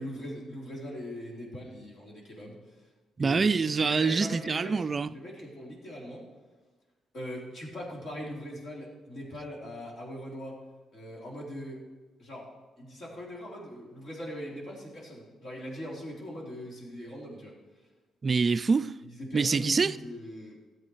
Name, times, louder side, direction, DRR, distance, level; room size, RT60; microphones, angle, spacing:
voice 1, 0.0-2.8 3.2-3.5 3.8-4.8 5.1-6.3 7.1-10.6 10.9-11.8 12.2-12.5 12.8-17.5 19.0-20.6, equal, 55° left, 3.7 m, -40 dB
voice 2, 3.2-5.1 18.2-18.9 19.3-19.9, right 4 dB, 35° right, 0.3 m, -25 dB
13.5 x 8.1 x 4.7 m
cardioid pair, 90°, 0 cm